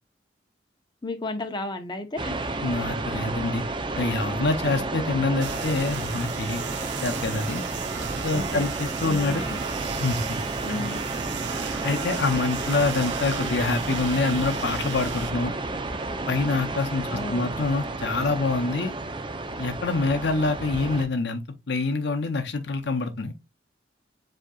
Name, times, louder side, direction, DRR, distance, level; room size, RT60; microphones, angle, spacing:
voice 1, 1.0-2.4 8.3-8.7 9.0-9.6 10.6-11.0 17.0-17.6, left 1 dB, 25° left, 0.8 m, -33 dB
sound 1, 2.2-21.1, right 2 dB, 25° right, 0.5 m, -31 dB
voice 2, 2.6-3.6 3.9-6.6 7.0-7.6 8.2-9.4 10.0-10.4 10.7-10.9 11.8-15.5 16.3-18.9 19.6-23.3, left 3 dB, 65° left, 0.6 m, -26 dB
sound 2, 5.4-15.3, right 8 dB, 70° right, 0.6 m, -37 dB
7.5 x 2.8 x 2.3 m
head